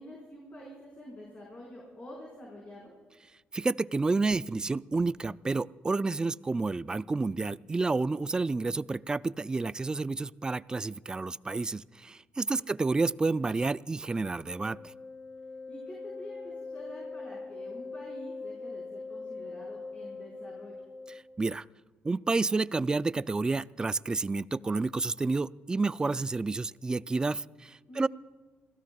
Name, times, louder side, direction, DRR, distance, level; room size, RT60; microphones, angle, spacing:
voice 1, 0.0-2.9 12.4-12.7 15.7-20.7 27.9-28.1, equal, 35° left, -3 dB, 4.9 m, -47 dB
voice 2, 3.5-14.8 21.4-21.6 22.0-28.1, right 3 dB, 20° right, 18 dB, 0.3 m, -30 dB
Wind instrument woodwind instrument, 14.4-21.4, left 3 dB, 55° left, 1.2 m, -42 dB
27.0 x 16.5 x 2.4 m, 1.4 s
cardioid pair, 95°, 4 cm